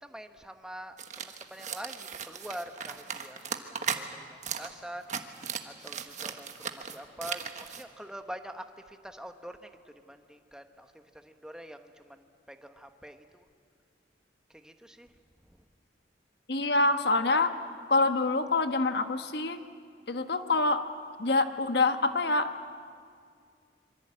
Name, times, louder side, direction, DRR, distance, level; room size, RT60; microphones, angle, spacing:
voice 1, 0.0-4.1 4.6-5.1 5.6-9.7 10.1-10.9 11.2-13.4 14.6-15.1, equal, 5° right, 6 dB, 1.2 m, -45 dB
sound 1, 1.0-4.0 4.4-4.7 5.0-7.8, right 7 dB, 40° right, 1.4 m, -37 dB
voice 2, 16.5-17.5 17.9-19.6 20.1-20.8 21.2-22.5, left 3 dB, 65° left, 8 dB, 1.3 m, -26 dB
26.0 x 24.0 x 8.7 m, 2.2 s
head